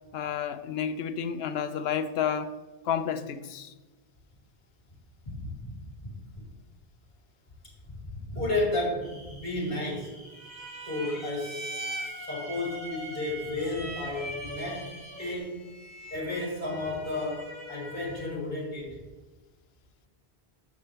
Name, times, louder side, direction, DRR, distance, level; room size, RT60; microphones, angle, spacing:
voice 1, 0.1-2.5 2.8-3.7, left 8 dB, 75° left, 0.9 m, -30 dB
voice 2, 5.2-5.7 6.0-6.1 8.1-10.1 10.8-15.6 16.1-19.0, left 2 dB, 45° left, 3.0 m, -33 dB
sound 1, 9.0-15.4, equal, 90° right, 3.4 m, -52 dB
sound 2, 10.3-18.4, right 1 dB, 15° left, 2.7 m, -41 dB
10.5 x 7.2 x 3.3 m
omnidirectional pair, 1.1 m